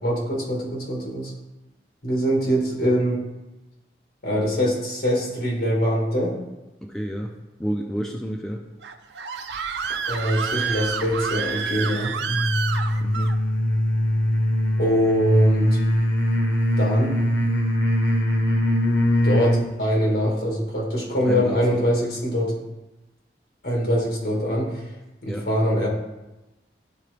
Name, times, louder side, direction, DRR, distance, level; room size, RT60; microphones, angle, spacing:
voice 1, 0.0-1.3 2.0-3.2 4.2-6.4 10.1-12.2 14.8-15.8 16.8-17.2 19.2-22.6 23.6-24.8 25.2-25.9, equal, 60° left, -2 dB, 1.8 m, -23 dB
voice 2, 6.8-7.3 7.6-8.6 13.0-13.3 21.2-21.9 25.3-25.5, equal, 5° left, 0 dB, 0.4 m, -30 dB
Screaming, 8.8-13.3, right 6 dB, 75° right, 0.4 m, -29 dB
sound 1, 12.3-19.7, left 1 dB, 90° left, 0.9 m, -22 dB
10.5 x 3.8 x 3.3 m, 1.0 s
head